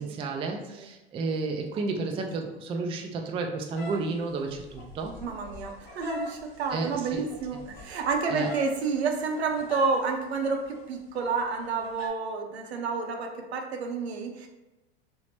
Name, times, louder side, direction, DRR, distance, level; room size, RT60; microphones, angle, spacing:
voice 1, 0.0-5.1 6.7-7.2 8.3-8.5, right 3 dB, 20° right, 3 dB, 0.3 m, -32 dB
sound 1, 3.7-8.8 9.1-10.0 10.4-10.8 11.1-12.1, left 3 dB, 55° left, 1.1 m, -42 dB
voice 2, 5.2-14.5, right 4 dB, 80° right, 3 dB, 0.6 m, -30 dB
2.9 x 2.0 x 3.1 m, 1.0 s
hypercardioid pair, 90°, 31 cm